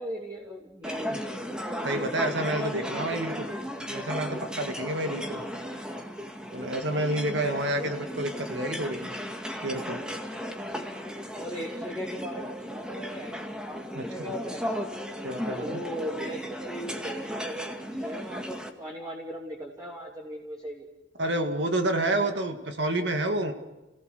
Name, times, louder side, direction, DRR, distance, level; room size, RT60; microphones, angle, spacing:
voice 1, 0.0-2.8 4.9-5.1 7.1-8.0 10.6-10.9 11.3-13.8 14.1-14.6 15.3-20.9, equal, 20° right, -2 dB, 3.1 m, -38 dB
sound 1, 0.8-18.7, equal, 5° right, 2.0 m, -36 dB
voice 2, 1.8-3.5 3.9-5.4 6.5-9.1 9.6-10.0 13.9-14.1 15.2-15.8 21.2-23.5, right 1 dB, 65° right, 5 dB, 2.1 m, -29 dB
30.0 x 18.5 x 6.7 m, 1.1 s
head